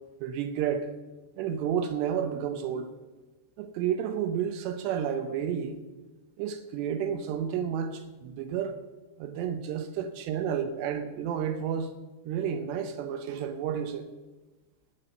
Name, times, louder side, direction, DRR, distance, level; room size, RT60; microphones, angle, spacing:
voice 1, 0.2-0.9 1.4-2.9 3.6-5.8 6.4-8.8 9.2-11.9 12.2-14.1, right 8 dB, 75° right, 9 dB, 2.6 m, -31 dB
19.0 x 8.4 x 6.7 m, 1.2 s
omnidirectional pair, 5.8 m